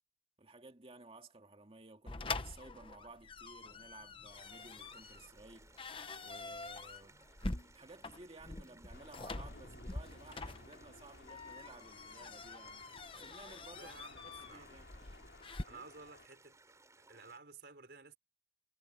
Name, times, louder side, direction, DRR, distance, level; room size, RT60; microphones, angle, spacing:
voice 1, 0.4-7.2 7.7-14.9 15.7-15.8, right 2 dB, 35° right, 2.2 m, -56 dB
sound 1, 2.1-15.6, left 3 dB, 30° left, 1.0 m, -45 dB
sound 2, 4.3-17.4, right 3 dB, 20° right, 7.2 m, -64 dB
Thunder / Rain, 8.9-16.3, left 2 dB, 75° left, 3.5 m, -58 dB
voice 2, 13.7-14.7 15.6-16.6 17.0-18.2, right 4 dB, 65° right, 4.7 m, -54 dB
head